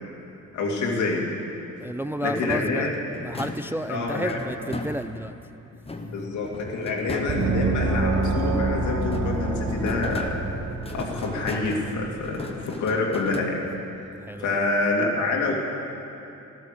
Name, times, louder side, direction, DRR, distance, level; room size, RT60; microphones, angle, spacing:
voice 1, 0.5-1.3 2.2-2.9 3.9-4.4 6.0-10.4 10.9-13.6 14.4-15.5, left 3 dB, 75° left, -1 dB, 2.6 m, -27 dB
voice 2, 1.8-5.3 14.2-14.6, equal, 10° right, 10 dB, 0.3 m, -31 dB
sound 1, 2.3-5.4 5.8-8.7 9.0-13.9, left 2 dB, 20° left, 1.2 m, -37 dB
Gong, 7.3-12.5, right 3 dB, 60° right, 1.5 m, -27 dB
13.0 x 12.5 x 6.7 m, 2.9 s
cardioid pair, 90°, 30 cm